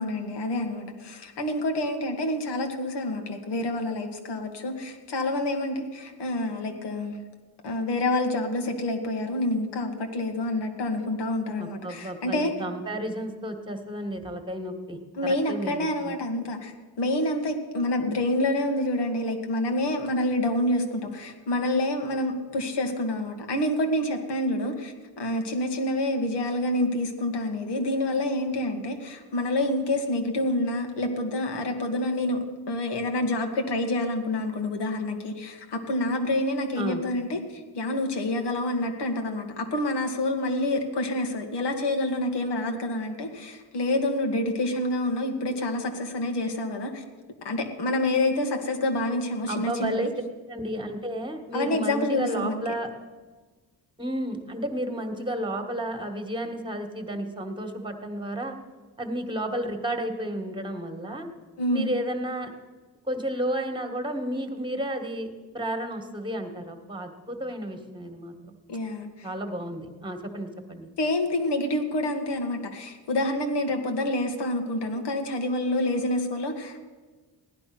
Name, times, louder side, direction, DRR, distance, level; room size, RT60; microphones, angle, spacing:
voice 1, 0.0-7.2 7.6-12.5 15.2-16.7 17.0-32.4 32.7-47.0 47.4-50.1 51.5-52.6 61.6-61.9 68.7-69.3 71.0-76.8, left 1 dB, 80° left, 5 dB, 2.0 m, -27 dB
voice 2, 11.6-16.2 36.7-37.0 49.5-50.1 50.5-52.9 54.0-58.5 59.0-61.3 61.7-62.5 63.1-65.3 65.5-68.3 69.2-70.9, right 1 dB, 10° right, 5 dB, 1.7 m, -32 dB
16.5 x 11.0 x 6.1 m, 1.4 s
cardioid pair, 115°, 41 cm